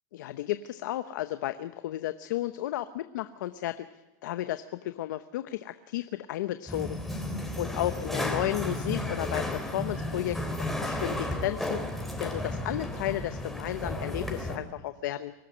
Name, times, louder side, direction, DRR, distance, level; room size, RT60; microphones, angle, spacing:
voice 1, 0.2-3.9 4.2-15.3, left 13 dB, 85° left, 11 dB, 0.9 m, -33 dB
sound 1, 6.7-14.6, left 1 dB, ahead, 3.3 m, -33 dB
24.0 x 13.0 x 9.8 m, 1.1 s
supercardioid pair, 140°, 10 cm